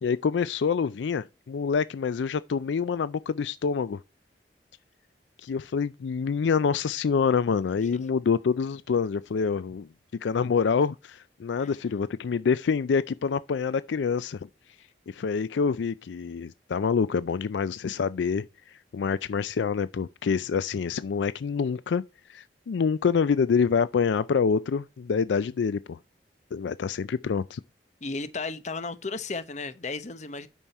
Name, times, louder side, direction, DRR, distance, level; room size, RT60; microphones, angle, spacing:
voice 1, 0.0-4.0 5.4-9.9 10.2-14.4 15.1-18.5 18.9-22.0 22.3-26.0 26.5-27.6, left 5 dB, 90° left, 0.4 m, -26 dB
voice 2, 28.0-30.5, left 3 dB, 40° left, 1.0 m, -34 dB
9.0 x 6.3 x 4.2 m
head